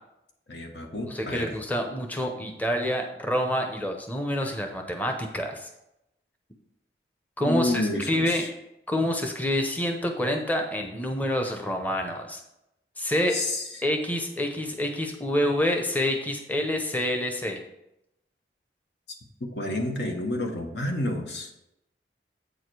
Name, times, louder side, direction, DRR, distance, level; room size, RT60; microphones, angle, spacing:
voice 1, 0.5-1.5 7.4-8.5 13.3-13.6 19.4-21.5, left 1 dB, 80° left, 3 dB, 1.2 m, -29 dB
voice 2, 1.1-5.7 7.4-8.5 8.9-12.4 13.0-13.4 13.8-17.6, left 1 dB, 10° left, 4 dB, 0.7 m, -27 dB
8.0 x 4.8 x 4.7 m, 0.84 s
head